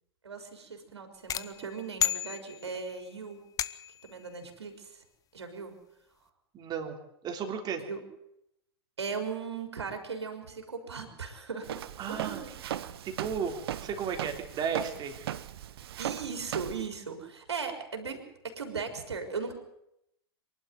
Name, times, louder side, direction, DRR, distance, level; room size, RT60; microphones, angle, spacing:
voice 1, 0.2-3.4 4.0-5.0 5.3-5.8 7.8-8.0 9.0-12.6 16.0-19.5, right 5 dB, 90° right, 5 dB, 4.1 m, -38 dB
sound 1, 1.3-2.9 3.6-4.1, left 11 dB, 25° left, 0.8 m, -33 dB
voice 2, 6.5-7.0 7.2-7.8 12.0-12.4 13.0-15.3, right 6 dB, 30° right, 4 dB, 3.5 m, -34 dB
Walk footsteps, 11.6-16.9, right 11 dB, 70° right, 1.0 m, -38 dB
23.5 x 12.0 x 9.4 m, 0.80 s
hypercardioid pair, 110°, 14 cm